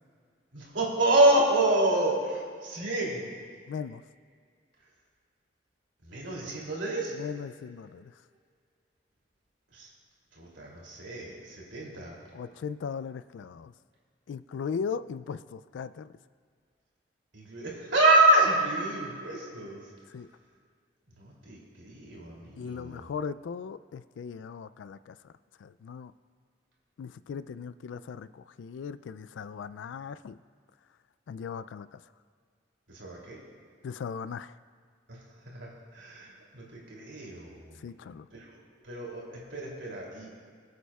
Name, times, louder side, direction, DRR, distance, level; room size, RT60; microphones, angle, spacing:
voice 1, 0.5-3.4 6.0-7.1 9.7-9.9 10.3-12.2 17.3-19.9 21.2-23.0 32.9-33.4 35.1-37.8 38.3-38.5 38.8-39.2 39.5-40.3, right 1 dB, 85° right, -3 dB, 2.8 m, -27 dB
voice 2, 3.7-4.0 7.1-8.2 12.3-13.7 14.3-16.2 20.1-20.3 22.5-25.3 25.6-26.1 27.0-30.4 31.3-32.1 33.8-34.6 37.7-38.3, left 6 dB, 80° left, 15 dB, 0.3 m, -38 dB
24.0 x 8.4 x 2.3 m, 2.1 s
head